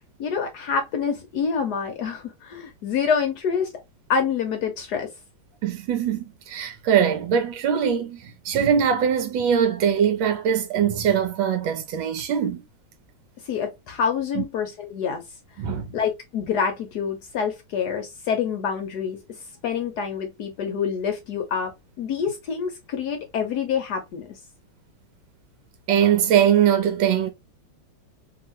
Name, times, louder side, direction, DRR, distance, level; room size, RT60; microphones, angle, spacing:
voice 1, 0.2-3.7 4.1-5.1 13.4-15.2 15.9-24.4, left 6 dB, 70° left, 1.0 m, -27 dB
voice 2, 5.6-12.6 14.4-14.5 15.6-15.9 25.9-27.3, right 8 dB, 80° right, 1.5 m, -22 dB
3.0 x 2.9 x 2.7 m
omnidirectional pair, 2.2 m